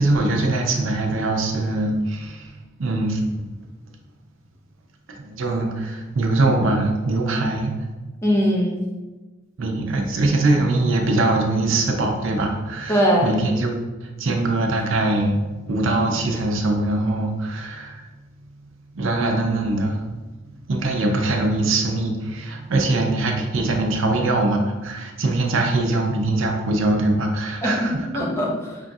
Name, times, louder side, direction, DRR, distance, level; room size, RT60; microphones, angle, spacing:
voice 1, 0.0-2.5 2.8-3.5 5.2-7.7 9.6-13.8 14.2-18.0 18.9-20.1 20.7-28.1, right 2 dB, 70° right, 2 dB, 0.6 m, -22 dB
voice 2, 8.2-8.8 12.9-13.3 27.6-28.8, equal, 15° left, -2 dB, 0.6 m, -21 dB
5.1 x 2.6 x 2.3 m, 1.2 s
head